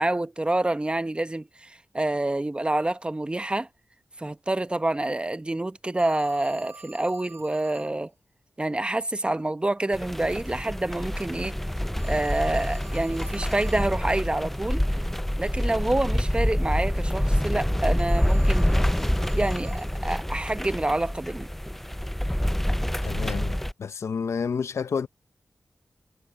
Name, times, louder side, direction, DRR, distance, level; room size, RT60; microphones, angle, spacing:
voice 1, 0.0-3.7 4.2-8.1 8.6-11.6 12.1-14.9 15.4-18.7 19.4-21.5, right 2 dB, 20° right, 1.0 m, -27 dB
Telephone, 6.0-8.0 11.9-14.0 18.0-20.0, right 4 dB, 65° right, 3.4 m, -49 dB
sound 1, 9.9-23.7, equal, 5° left, 0.4 m, -26 dB
voice 2, 23.0-25.1, left 6 dB, 80° left, 0.6 m, -30 dB
cardioid pair, 50°, 5 cm